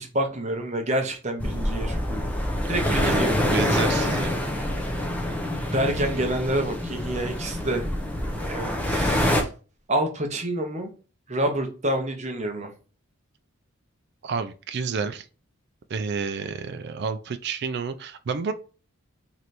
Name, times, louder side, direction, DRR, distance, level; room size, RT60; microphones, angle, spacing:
voice 1, 0.0-2.3 2.7-3.8 5.7-7.9 8.3-9.5 9.9-10.9 11.3-12.7, right 1 dB, 30° right, 4 dB, 0.8 m, -28 dB
sound 1, 1.4-9.4, left 1 dB, 5° left, 0.6 m, -26 dB
voice 2, 2.8-3.2 3.4-4.4 14.2-15.3 15.9-18.5, right 5 dB, 50° right, 10 dB, 0.3 m, -30 dB
3.2 x 2.9 x 4.0 m, 0.35 s
head